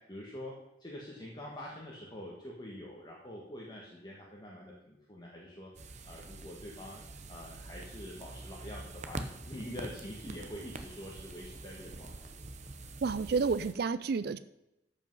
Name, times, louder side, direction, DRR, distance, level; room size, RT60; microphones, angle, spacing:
voice 1, 0.1-0.5 0.8-7.0 7.3-12.2, left 1 dB, 25° left, -3 dB, 1.6 m, -45 dB
sound 1, 5.7-13.7, right 2 dB, 40° right, 0.9 m, -45 dB
voice 2, 13.0-14.4, right 5 dB, 60° right, 14 dB, 0.4 m, -30 dB
13.5 x 5.6 x 5.5 m, 0.89 s
head